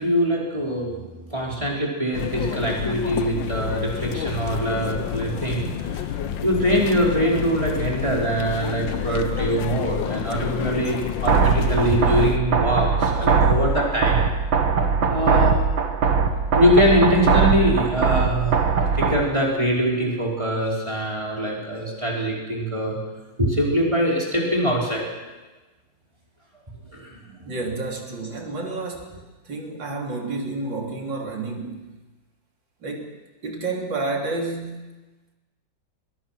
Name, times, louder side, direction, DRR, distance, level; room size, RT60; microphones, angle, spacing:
voice 1, 0.0-6.1 6.4-14.2 15.1-15.6 16.5-23.0 23.4-25.1 26.9-27.5, equal, 15° right, -3 dB, 5.2 m, -23 dB
sound 1, 2.1-12.4, left 8 dB, 80° left, 1.7 m, -29 dB
sound 2, 11.3-19.3, right 5 dB, 90° right, 2.4 m, -20 dB
voice 2, 27.5-29.2 29.5-31.9 32.8-33.2 33.4-35.0, right 3 dB, 75° right, 1 dB, 4.0 m, -30 dB
25.0 x 21.0 x 6.1 m, 1.2 s
omnidirectional pair, 2.0 m